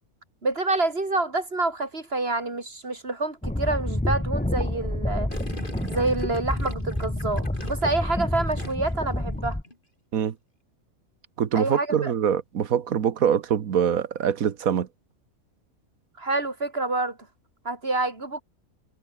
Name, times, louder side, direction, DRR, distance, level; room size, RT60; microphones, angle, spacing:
voice 1, 0.4-5.3 5.9-9.6 11.5-12.1 16.2-17.2 17.6-18.4, right 2 dB, 45° right, 4.2 m, -27 dB
sound 1, 3.4-9.6, left 1 dB, 5° left, 0.8 m, -28 dB
Gurgling, 5.3-9.1 9.4-9.8, left 1 dB, 35° left, 5.7 m, -41 dB
voice 2, 11.4-14.9, right 8 dB, 80° right, 1.6 m, -24 dB
omnidirectional pair, 1.5 m